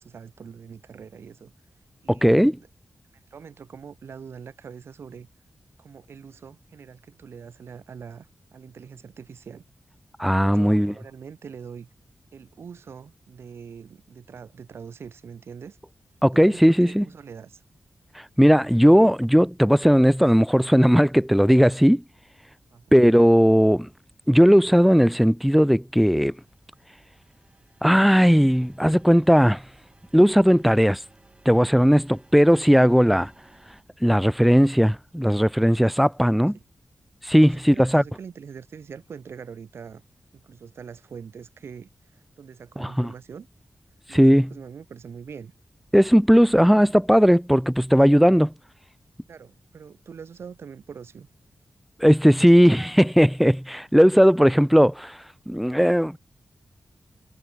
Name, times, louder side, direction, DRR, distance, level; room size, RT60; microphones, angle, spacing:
voice 1, 0.0-1.5 2.0-2.7 3.1-5.3 5.8-9.6 10.3-11.9 12.3-15.8 16.3-17.6 22.7-22.8 36.5-36.6 37.4-40.0 40.3-43.5 44.1-45.5 49.3-51.3, right 6 dB, 80° right, 1.4 m, -43 dB
voice 2, 2.1-2.6 10.2-10.9 16.2-17.1 18.4-22.0 22.9-23.9 24.3-26.3 27.8-29.6 30.1-31.0 31.5-33.3 34.0-36.6 37.2-38.0 42.8-43.1 44.1-44.5 45.9-48.5 52.0-55.2 55.5-56.2, equal, ahead, 0.4 m, -17 dB
sound 1, 26.0-33.8, right 2 dB, 25° right, 6.9 m, -57 dB
cardioid pair, 70°, 4 cm